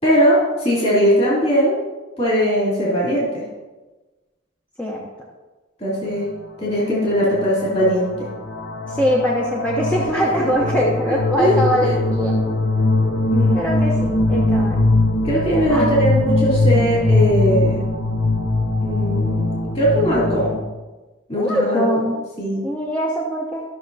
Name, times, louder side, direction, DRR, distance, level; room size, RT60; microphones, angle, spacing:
voice 1, 0.0-1.8 2.2-3.4 5.8-6.3 6.6-8.3 10.8-10.9 11.4-12.0 13.3-13.7 15.2-17.8 18.8-20.6 21.3-22.1 22.4-22.6, equal, 30° left, -7 dB, 3.0 m, -20 dB
sound 1, 7.3-7.5 7.8-20.6, left 2 dB, 55° left, 0.9 m, -21 dB
voice 2, 8.9-12.4 13.5-14.9 15.7-16.0 21.3-22.2 22.6-23.6, equal, 5° left, -4 dB, 0.9 m, -22 dB
14.0 x 6.4 x 2.8 m, 1.2 s
head